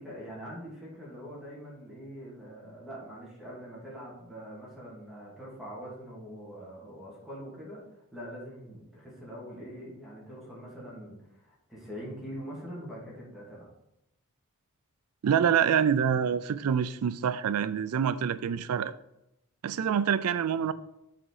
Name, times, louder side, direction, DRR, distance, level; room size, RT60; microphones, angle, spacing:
voice 1, 0.0-13.7 18.3-18.4, equal, ahead, 2.6 m, -43 dB
voice 2, 15.2-18.9 19.6-20.7, right 8 dB, 80° right, 0.4 m, -26 dB
7.7 x 5.0 x 4.8 m
head